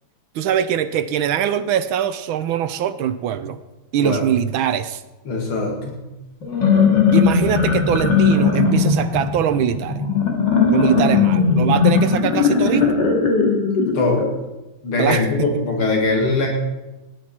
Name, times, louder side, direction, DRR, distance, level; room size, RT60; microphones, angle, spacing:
voice 1, 0.3-3.6 3.9-5.0 7.1-10.0 10.7-12.9 15.0-15.2, right 9 dB, 75° right, 12 dB, 1.5 m, -22 dB
voice 2, 5.3-6.0 13.9-14.3 14.8-16.5, left 3 dB, 85° left, 0 dB, 3.0 m, -21 dB
sound 1, 6.4-14.3, left 5 dB, 60° left, 2.7 m, -18 dB
17.5 x 10.5 x 4.4 m, 1.0 s
omnidirectional pair, 2.3 m